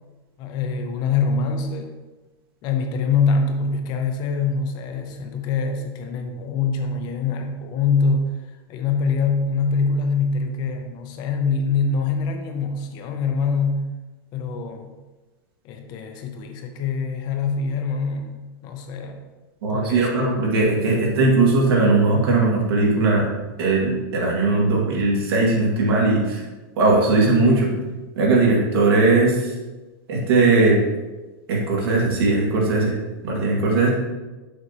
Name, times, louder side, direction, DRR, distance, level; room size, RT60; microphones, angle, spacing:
voice 1, 0.4-1.9 2.6-13.8 14.3-14.9 15.6-19.2 19.7-20.4, left 4 dB, 35° left, 5 dB, 0.7 m, -24 dB
voice 2, 19.6-23.3 23.6-26.4 26.8-27.7 28.2-29.5 30.1-30.8 31.5-32.9 33.2-33.9, right 3 dB, 75° right, -3 dB, 2.3 m, -19 dB
6.7 x 6.0 x 3.0 m, 1.2 s
supercardioid pair, 160°, 13 cm